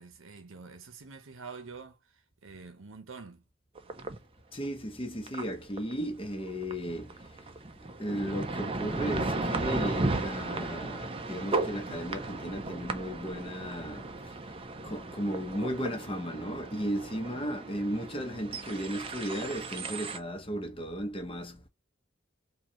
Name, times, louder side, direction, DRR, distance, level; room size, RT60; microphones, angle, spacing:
voice 1, 0.0-3.4, right 4 dB, 85° right, 0.9 m, -47 dB
sound 1, 3.8-4.2 4.8-4.9 5.3-5.4 5.8-5.9 6.5-20.2, right 2 dB, 30° right, 0.5 m, -35 dB
voice 2, 4.5-7.5 7.8-21.7, equal, 25° left, 0.8 m, -35 dB
3.9 x 2.8 x 4.2 m
head